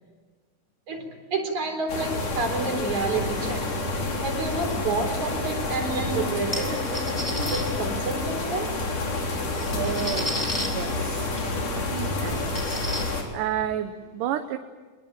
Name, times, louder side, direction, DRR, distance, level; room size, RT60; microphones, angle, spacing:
voice 1, 0.9-3.7 4.2-8.8, right 3 dB, 65° right, 3 dB, 5.5 m, -29 dB
sound 1, 1.9-13.2, left 2 dB, 70° left, 5.1 m, -29 dB
sound 2, 6.5-7.6 8.9-9.0 9.4-10.7 11.4-11.5 11.8-11.9 12.3-13.0, equal, 5° left, 4.1 m, -32 dB
voice 2, 9.7-10.4 10.7-11.4 11.8-12.9 13.3-14.6, right 10 dB, 80° right, 7 dB, 2.6 m, -31 dB
24.5 x 21.5 x 9.0 m, 1.4 s
omnidirectional pair, 3.7 m